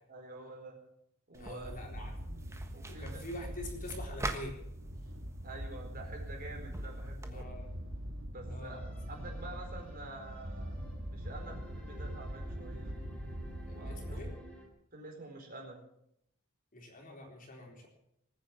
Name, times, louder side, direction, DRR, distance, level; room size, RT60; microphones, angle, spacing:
voice 1, 0.1-0.8 1.3-1.7 2.7-3.2 5.4-7.5 8.3-8.8 9.1-10.7 11.1-12.9 13.6-14.2 14.9-15.8, right 2 dB, 45° right, 2 dB, 4.4 m, -48 dB
sound 1, 1.3-7.4, right 2 dB, 15° right, 1.4 m, -45 dB
voice 2, 1.4-2.1 2.9-4.6 7.3-7.7 8.5-8.8 13.7-14.3 16.7-17.9, left 1 dB, 40° left, 1 dB, 3.9 m, -45 dB
sound 2, 1.6-14.4, equal, 65° right, 1.9 m, -42 dB
sound 3, 8.6-14.7, equal, 5° left, 3.4 m, -55 dB
20.5 x 9.6 x 7.4 m, 0.76 s
head